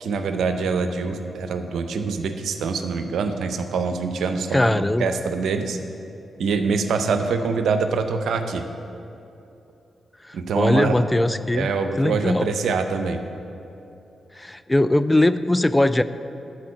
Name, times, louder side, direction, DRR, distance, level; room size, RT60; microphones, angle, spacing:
voice 1, 0.0-5.8 6.4-8.6 10.3-11.0 11.5-13.2, right 5 dB, 80° right, 7 dB, 0.6 m, -24 dB
voice 2, 4.5-5.1 10.2-11.7 12.0-12.5 14.4-16.0, left 1 dB, 15° left, 13 dB, 0.3 m, -20 dB
11.5 x 4.5 x 6.4 m, 2.8 s
supercardioid pair, 45°, 0 cm